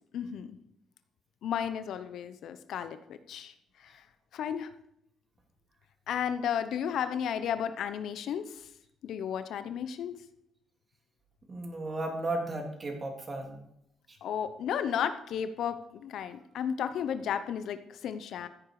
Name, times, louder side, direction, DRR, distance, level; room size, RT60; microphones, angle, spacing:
voice 1, 0.1-0.5 1.4-3.5 3.8-4.0 4.3-4.7 6.1-8.7 9.0-10.1 14.2-18.5, left 8 dB, 75° left, 11 dB, 0.9 m, -33 dB
voice 2, 11.5-13.6 14.1-14.2, right 2 dB, 30° right, 2 dB, 3.4 m, -35 dB
14.5 x 9.1 x 4.9 m, 0.77 s
cardioid pair, 90°, 0 cm